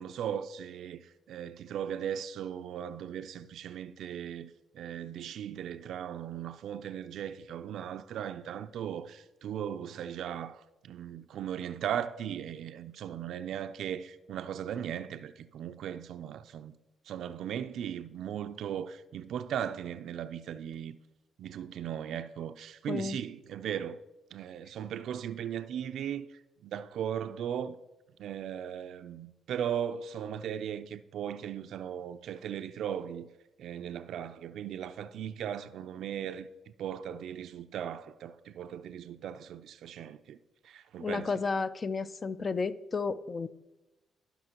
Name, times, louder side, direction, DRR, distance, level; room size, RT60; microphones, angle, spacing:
voice 1, 0.0-16.7 17.1-21.0 21.4-24.0 24.3-27.8 28.2-33.3 33.6-40.4 40.6-41.4, right 9 dB, 75° right, 0.4 m, -38 dB
voice 2, 41.0-43.5, left 4 dB, 35° left, 0.4 m, -32 dB
15.0 x 5.7 x 2.9 m
cardioid pair, 90°, 0 cm